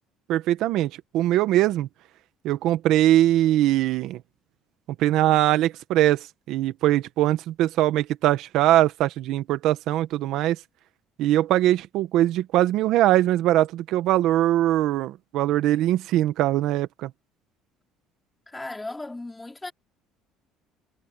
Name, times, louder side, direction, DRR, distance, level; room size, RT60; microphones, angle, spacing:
voice 1, 0.3-1.9 2.4-4.2 5.0-10.6 11.2-17.1, right 14 dB, 65° right, 1.2 m, -21 dB
voice 2, 18.5-19.7, left 2 dB, 10° left, 3.4 m, -36 dB
cardioid pair, 130°, 0 cm